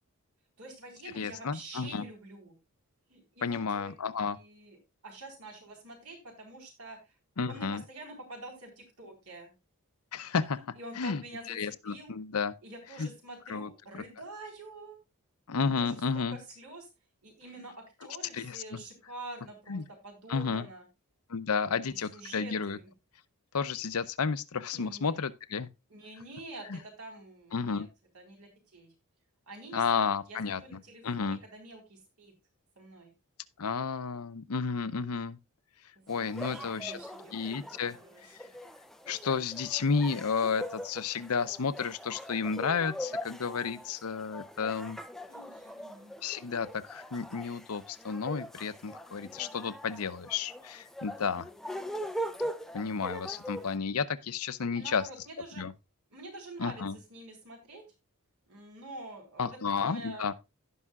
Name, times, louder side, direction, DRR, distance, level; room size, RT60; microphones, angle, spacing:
voice 1, 0.6-2.6 3.1-4.8 5.0-7.1 7.5-9.5 10.4-12.1 12.6-15.0 15.6-16.9 17.2-20.8 21.6-22.9 24.7-25.1 25.9-27.9 28.1-28.9 29.5-32.3 32.8-33.1 36.0-38.2 45.3-46.2 54.6-55.6 56.1-57.8 58.5-60.2, right 2 dB, 80° right, 4.1 m, -47 dB
voice 2, 1.1-2.1 3.4-4.4 7.4-7.8 10.1-12.5 13.0-13.1 13.5-14.0 15.5-16.4 18.3-18.8 19.7-19.8 20.3-20.7 21.3-22.8 23.5-25.7 26.7-26.8 27.5-27.9 29.7-31.4 33.6-35.4 36.1-37.0 37.3-38.0 38.3-38.4 39.1-45.0 46.2-51.5 52.7-55.0 55.6-55.7 56.6-57.0 59.4-60.3, left 5 dB, 75° left, 0.7 m, -32 dB
sound 1, 36.1-53.8, equal, ahead, 0.6 m, -42 dB
16.5 x 5.6 x 2.4 m
head